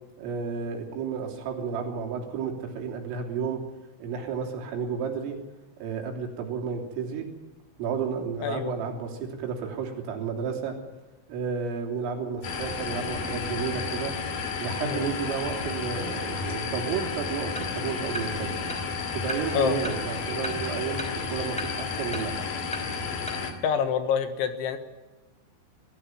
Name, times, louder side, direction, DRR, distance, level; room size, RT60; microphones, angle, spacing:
voice 1, 0.2-3.6 4.0-5.4 5.8-7.3 7.8-10.8 11.3-14.1 14.6-18.6 19.1-22.3, right 6 dB, 80° right, 2 dB, 5.8 m, -32 dB
voice 2, 8.4-8.8 14.8-15.1 19.5-19.8 23.6-24.8, left 7 dB, 75° left, 8 dB, 3.6 m, -26 dB
sound 1, 12.4-23.5, left 5 dB, 50° left, 3.4 m, -32 dB
sound 2, 17.5-23.3, equal, ahead, 4.1 m, -40 dB
23.0 x 14.5 x 9.2 m, 1.2 s
omnidirectional pair, 5.9 m